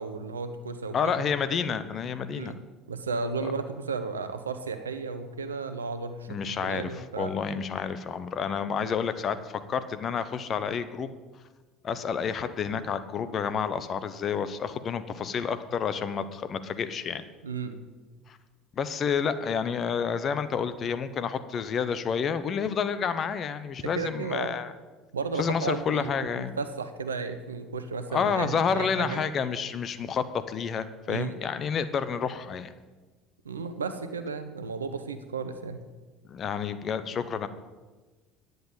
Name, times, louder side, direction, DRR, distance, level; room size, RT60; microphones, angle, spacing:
voice 1, 0.0-1.2 2.3-2.6 2.9-7.3 17.4-17.8 24.0-24.6 25.1-29.2 31.1-31.3 33.4-35.8, right 4 dB, 90° right, 9 dB, 0.8 m, -34 dB
voice 2, 0.9-2.5 6.3-11.1 11.8-17.2 18.3-18.4 18.8-24.7 25.4-26.6 28.1-32.7 36.3-37.5, left 6 dB, 40° left, 12 dB, 0.9 m, -29 dB
10.0 x 8.0 x 7.3 m, 1.3 s
hypercardioid pair, 65°, 0 cm